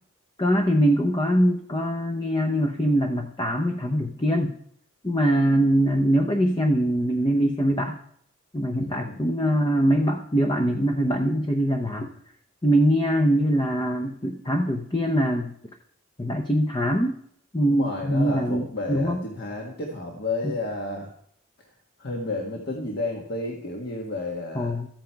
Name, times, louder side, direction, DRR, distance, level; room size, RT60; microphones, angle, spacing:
voice 1, 0.4-4.6 5.0-8.0 8.5-12.1 12.6-15.5 16.2-17.2 17.5-19.2 24.5-24.9, equal, 20° left, 4 dB, 0.8 m, -23 dB
voice 2, 8.8-9.2 17.7-21.1 22.0-24.8, left 2 dB, 45° left, 0 dB, 1.6 m, -31 dB
13.5 x 9.1 x 4.6 m, 0.66 s
head